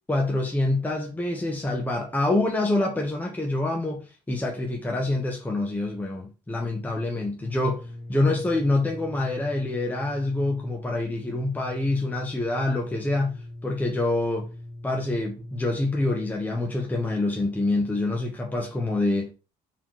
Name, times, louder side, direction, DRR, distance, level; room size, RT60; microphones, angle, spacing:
voice 1, 0.1-14.5 14.8-19.3, left 2 dB, 10° left, 0.8 m, -26 dB
sound 1, 7.4-16.3, left 1 dB, 30° left, 1.7 m, -41 dB
4.4 x 3.8 x 2.9 m
cardioid pair, 110°, 17 cm